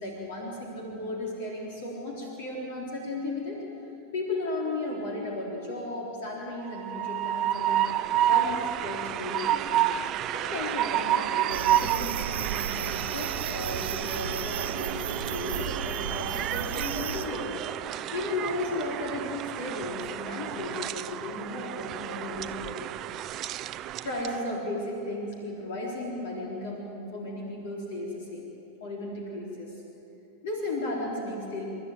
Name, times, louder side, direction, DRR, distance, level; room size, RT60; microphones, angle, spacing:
voice 1, 0.0-3.6 4.1-8.0 8.3-9.9 10.3-17.5 18.1-22.9 24.0-28.5 28.8-29.8 30.4-31.6, left 2 dB, 55° left, -2 dB, 3.7 m, -35 dB
Train, 6.7-24.5, right 12 dB, 35° right, 0.6 m, -30 dB
sound 1, 11.5-17.2, right 7 dB, 60° right, 1.3 m, -34 dB
30.0 x 12.0 x 9.4 m, 2.9 s
figure-of-eight pair, 90°, 0 cm